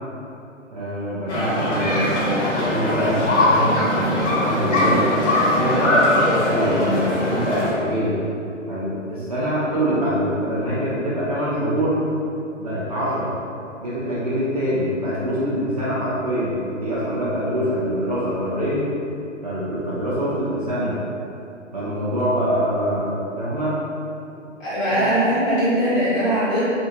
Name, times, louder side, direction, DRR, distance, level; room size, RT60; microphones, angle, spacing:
voice 1, 0.7-5.1 5.5-8.2 8.7-12.0 12.6-13.3 13.8-18.8 19.4-20.9 21.7-23.8 24.9-25.0, equal, 35° right, -11 dB, 0.4 m, -24 dB
sound 1, 1.3-7.7, left 1 dB, 60° left, 1.0 m, -20 dB
voice 2, 24.6-26.6, right 1 dB, 15° left, -13 dB, 0.7 m, -20 dB
2.7 x 2.5 x 2.8 m, 2.7 s
figure-of-eight pair, 130°, 39 cm